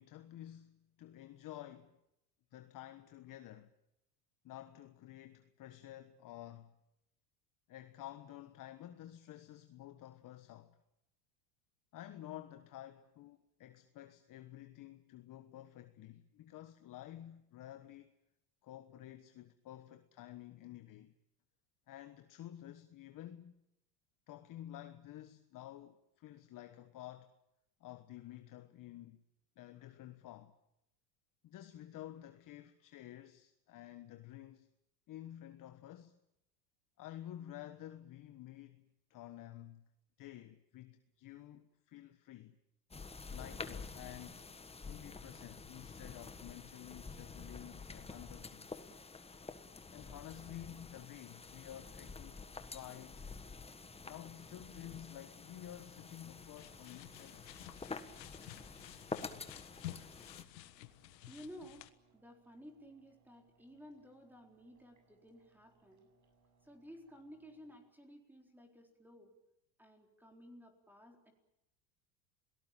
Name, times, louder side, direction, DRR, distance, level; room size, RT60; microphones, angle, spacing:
voice 1, 0.0-2.0 2.5-3.7 4.4-6.7 7.7-10.8 11.9-18.1 18.6-21.1 21.9-23.6 24.3-27.3 27.8-29.2 29.6-30.6 31.4-34.7 35.1-36.2 37.0-39.9 40.2-42.6 43.3-44.4 44.8-48.8 49.9-52.4 52.7-53.3 54.0-57.5, left 13 dB, 40° left, 1.3 m, -51 dB
sound 1, 42.9-60.4, left 4 dB, 10° left, 1.5 m, -49 dB
sound 2, 52.3-67.8, right 4 dB, 35° right, 7.2 m, -73 dB
sound 3, 55.5-61.9, left 15 dB, 85° left, 1.5 m, -52 dB
voice 2, 61.3-61.9 62.1-66.1 66.6-69.3 69.8-71.3, equal, 5° right, 4.2 m, -55 dB
28.0 x 18.5 x 8.9 m
supercardioid pair, 110°, 49 cm